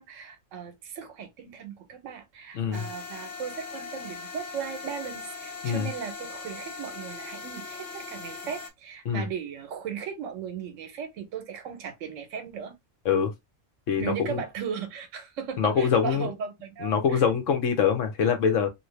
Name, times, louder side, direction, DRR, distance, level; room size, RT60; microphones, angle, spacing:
voice 1, 0.0-12.8 14.0-17.2, right 7 dB, 75° right, 1.1 m, -37 dB
voice 2, 2.5-2.9 5.6-5.9 9.1-9.3 13.0-13.3 13.9-14.4 15.6-16.3 16.8-18.7, left 7 dB, 75° left, 1.1 m, -24 dB
sound 1, 2.7-8.7, left 4 dB, 50° left, 1.1 m, -40 dB
2.8 x 2.7 x 3.1 m
omnidirectional pair, 1.3 m